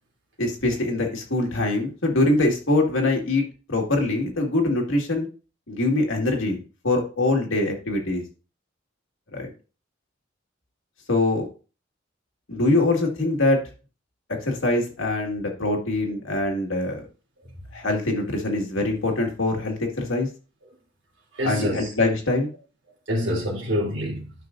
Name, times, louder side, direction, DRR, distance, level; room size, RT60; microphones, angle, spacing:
voice 1, 0.4-3.4 3.7-5.3 5.7-8.2 9.3-9.5 11.1-11.5 12.5-13.6 14.4-17.0 17.7-20.3 21.4-22.5, left 2 dB, 85° left, 2.1 m, -23 dB
voice 2, 17.4-17.8 20.7-20.8 21.3-21.9 23.1-24.3, equal, 70° right, 3.2 m, -27 dB
11.0 x 5.7 x 2.6 m
head